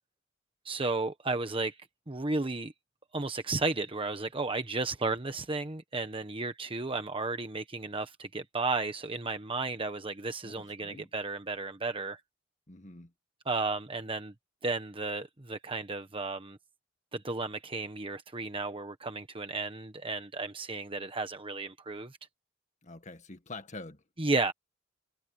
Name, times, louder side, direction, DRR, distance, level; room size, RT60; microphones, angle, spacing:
voice 1, 0.6-1.8 2.1-2.7 3.1-12.2 13.4-14.3 14.6-16.6 17.1-22.2 24.2-24.5, right 3 dB, 30° right, 1.1 m, -33 dB
voice 2, 10.4-11.1 12.7-13.1 22.8-24.0, left 2 dB, 40° left, 1.8 m, -46 dB
head